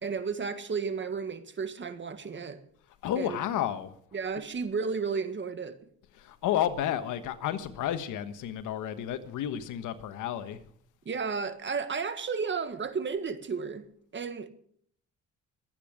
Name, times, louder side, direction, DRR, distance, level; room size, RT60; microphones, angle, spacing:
voice 1, 0.0-2.6 3.2-3.4 4.1-5.8 11.1-13.8 14.1-14.5, right 5 dB, 40° right, 1.8 m, -33 dB
voice 2, 3.0-3.9 6.1-10.6, left 10 dB, 85° left, 1.4 m, -31 dB
23.0 x 9.2 x 5.0 m
cardioid pair, 90°, 30 cm